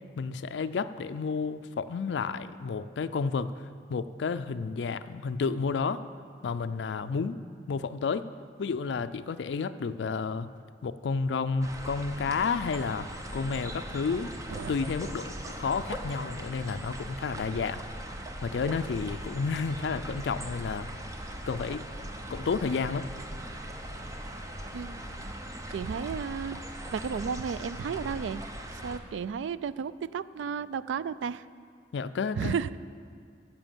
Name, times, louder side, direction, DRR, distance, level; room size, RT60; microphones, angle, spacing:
voice 1, 0.2-3.5 3.9-6.0 6.4-7.4 7.7-8.2 8.6-10.5 10.8-13.1 13.3-14.3 14.7-17.8 18.4-20.9 21.5-21.8 22.3-23.1 31.9-32.6, left 5 dB, 70° left, 11 dB, 0.4 m, -31 dB
sound 1, 11.6-29.0, right 1 dB, 20° right, 0.7 m, -40 dB
voice 2, 24.7-25.3 25.7-26.6 26.9-28.4 28.8-31.4 32.4-32.8, right 6 dB, 80° right, 17 dB, 0.3 m, -33 dB
10.5 x 7.0 x 7.4 m, 2.1 s
head